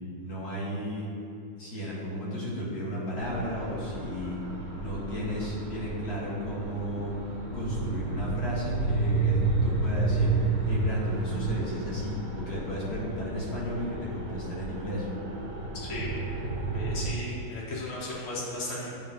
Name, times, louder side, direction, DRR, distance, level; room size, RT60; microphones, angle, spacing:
voice 1, 0.2-1.1 1.6-4.4 4.7-7.2 7.5-10.3 10.7-15.1, equal, 50° left, -6 dB, 1.9 m, -34 dB
sound 1, 3.1-17.1, right 3 dB, 60° right, 1.7 m, -31 dB
voice 2, 15.7-16.1 16.7-18.9, left 1 dB, 70° left, -7 dB, 2.1 m, -36 dB
9.5 x 3.9 x 3.6 m, 2.5 s
omnidirectional pair, 2.3 m